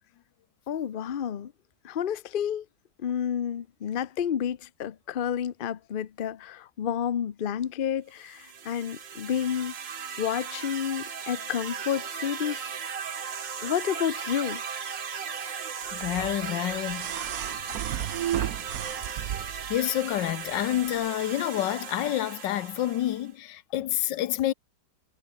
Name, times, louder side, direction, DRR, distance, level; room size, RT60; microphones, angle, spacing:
voice 1, 0.7-1.5 1.8-2.6 3.0-9.7 10.2-12.6 13.6-14.6, left 9 dB, 55° left, 0.5 m, -30 dB
sound 1, 8.2-23.3, right 7 dB, 80° right, 2.6 m, -37 dB
voice 2, 15.9-17.1 19.7-24.5, left 13 dB, 80° left, 1.5 m, -28 dB
sound 2, 16.0-19.8 21.0-21.1, right 11 dB, 60° right, 1.1 m, -33 dB
omnidirectional pair, 1.9 m